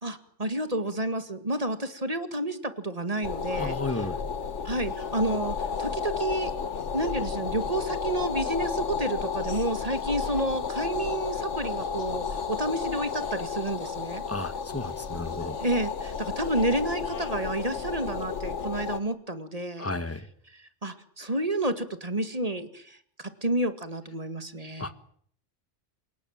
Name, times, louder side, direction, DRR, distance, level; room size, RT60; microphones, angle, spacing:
voice 1, 0.0-4.1 4.6-6.5 6.9-14.2 15.6-19.9 20.5-24.9, right 1 dB, 30° right, 10 dB, 2.2 m, -30 dB
sound 1, 3.2-19.0, left 6 dB, 75° left, 1.7 m, -32 dB
voice 2, 3.5-4.2 14.3-15.6 19.8-20.3 24.8-25.1, left 2 dB, 10° left, 12 dB, 1.4 m, -33 dB
28.0 x 18.5 x 8.9 m, 0.62 s
omnidirectional pair, 1.3 m